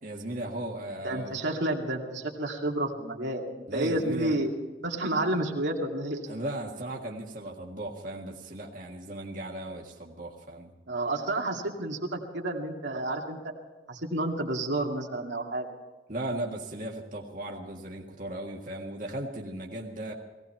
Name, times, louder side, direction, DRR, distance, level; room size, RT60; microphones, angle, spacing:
voice 1, 0.0-1.4 3.7-4.4 6.3-10.7 16.1-20.1, right 1 dB, 45° right, -1 dB, 1.8 m, -36 dB
voice 2, 1.0-4.5 4.8-6.3 10.9-13.4 13.9-15.7, right 1 dB, 85° right, 0 dB, 2.5 m, -30 dB
18.5 x 17.0 x 4.5 m, 1.2 s
head